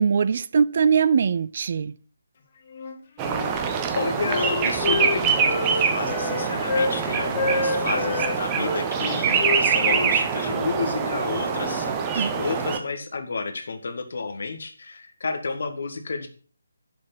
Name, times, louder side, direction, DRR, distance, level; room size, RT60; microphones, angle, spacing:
voice 1, 0.0-1.9 12.2-12.4, right 6 dB, 40° right, 0.4 m, -21 dB
Wind instrument woodwind instrument, 2.7-3.5 3.9-7.0 7.3-8.8 9.4-11.9, left 3 dB, 40° left, 1.8 m, -28 dB
sound 1, 3.2-12.8, right 6 dB, 20° right, 0.9 m, -24 dB
voice 2, 3.9-16.3, left 4 dB, 55° left, 1.6 m, -31 dB
10.5 x 5.0 x 5.7 m
figure-of-eight pair, 145°, 0 cm